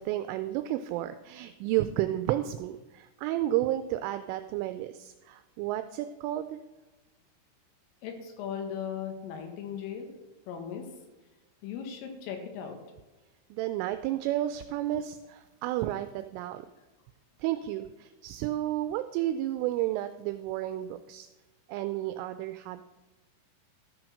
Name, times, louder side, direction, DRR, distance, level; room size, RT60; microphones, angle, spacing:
voice 1, 0.0-6.6 13.5-16.6 17.4-21.3 21.7-22.8, right 14 dB, 85° right, 10 dB, 3.0 m, -32 dB
voice 2, 8.0-10.1 10.5-10.9 11.6-12.8, left 8 dB, 80° left, 4 dB, 4.1 m, -37 dB
13.5 x 6.1 x 6.4 m, 1.1 s
omnidirectional pair, 5.9 m